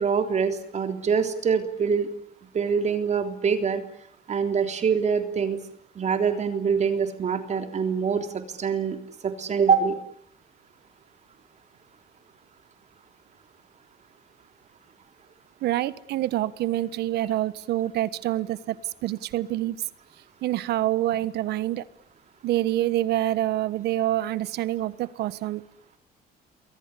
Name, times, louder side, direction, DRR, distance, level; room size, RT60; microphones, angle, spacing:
voice 1, 0.0-2.1 2.5-3.8 4.3-5.6 6.0-9.0 9.2-9.9, right 6 dB, 45° right, 7 dB, 3.6 m, -24 dB
voice 2, 15.6-19.8 20.4-21.8 22.4-25.6, right 14 dB, 75° right, 16 dB, 1.4 m, -26 dB
28.0 x 23.0 x 8.4 m, 0.65 s
cardioid pair, 110°, 17 cm